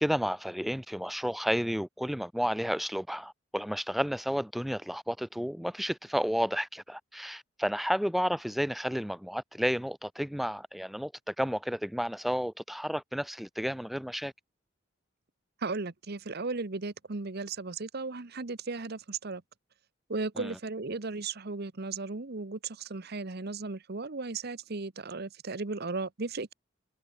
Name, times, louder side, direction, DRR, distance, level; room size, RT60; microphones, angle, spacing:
voice 1, 0.0-14.3 20.4-20.6, equal, ahead, 0.3 m, -31 dB
voice 2, 15.6-19.4 20.1-26.5, right 3 dB, 55° right, 1.1 m, -36 dB
head